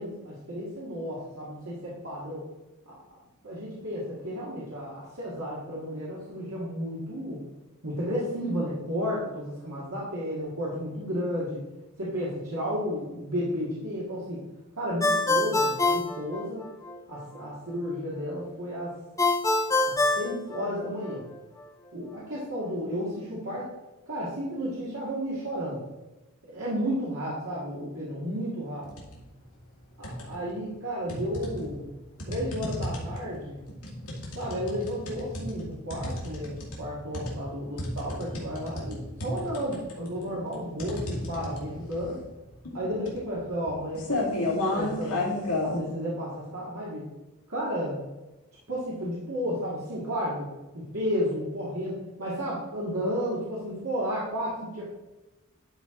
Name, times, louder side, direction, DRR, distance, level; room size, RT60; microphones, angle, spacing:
voice 1, 0.0-2.4 2.9-3.2 3.4-7.4 7.8-11.6 12.0-14.4 14.8-16.7 17.1-18.9 19.9-21.2 21.9-23.7 24.1-25.8 26.5-28.9 30.0-31.8 32.3-33.6 34.3-42.2 42.7-45.3 45.6-47.1 47.5-48.0 48.7-50.5 50.7-54.9, equal, 70° right, -7 dB, 1.9 m, -32 dB
Ringtone, 15.0-17.0 19.2-21.1, left 2 dB, 15° left, 0.7 m, -25 dB
sound 1, 28.8-29.2 29.6-30.5 31.1-45.8, left 2 dB, 90° left, 2.3 m, -33 dB
11.5 x 4.6 x 3.8 m, 1.0 s
head